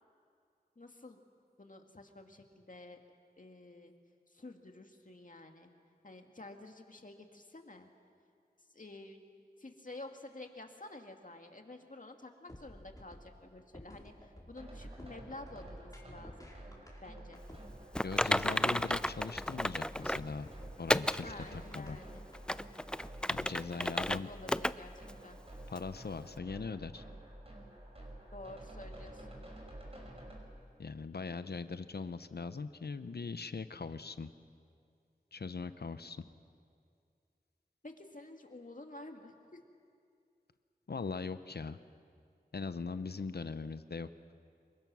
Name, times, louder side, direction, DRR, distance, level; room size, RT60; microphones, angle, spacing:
voice 1, 0.8-1.2 1.6-3.0 3.4-3.9 4.3-5.7 6.0-7.9 8.7-9.2 9.6-16.5 17.0-17.4 21.2-22.2 23.7-25.4 28.3-29.4 37.8-39.6, left 2 dB, 55° left, 4 dB, 2.2 m, -50 dB
sound 1, 12.5-22.4, equal, 20° left, 5.0 m, -53 dB
sound 2, 14.6-30.4, right 1 dB, 35° right, 5.6 m, -50 dB
voice 2, 18.0-20.5 20.8-22.0 23.3-24.3 25.7-27.0 30.8-34.3 35.3-36.3 40.9-41.8 42.5-44.1, left 4 dB, 80° left, 12 dB, 0.7 m, -40 dB
Typing, 18.0-20.3 20.9-21.2 21.7-21.8 22.3-24.2 24.5-24.7 25.1-25.2 25.8-25.9, left 1 dB, 5° left, 0.5 m, -32 dB
27.5 x 22.5 x 6.2 m, 2.3 s
wide cardioid pair, 45°, 16 cm